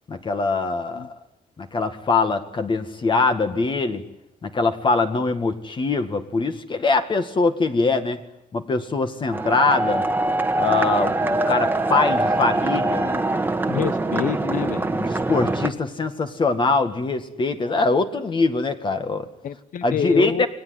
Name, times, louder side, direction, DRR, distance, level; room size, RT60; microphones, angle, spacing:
voice 1, 0.1-1.1 1.6-4.0 4.4-8.2 8.5-10.0 10.6-13.1 13.7-13.8 14.9-19.3 19.8-20.5, left 3 dB, 35° left, 8 dB, 2.0 m, -23 dB
sound 1, 9.3-15.7, right 2 dB, 15° right, 1.5 m, -23 dB
voice 2, 13.7-14.9 17.6-17.8 19.4-20.5, left 8 dB, 65° left, 15 dB, 1.2 m, -27 dB
29.0 x 20.0 x 9.8 m, 0.87 s
cardioid pair, 135°, 15 cm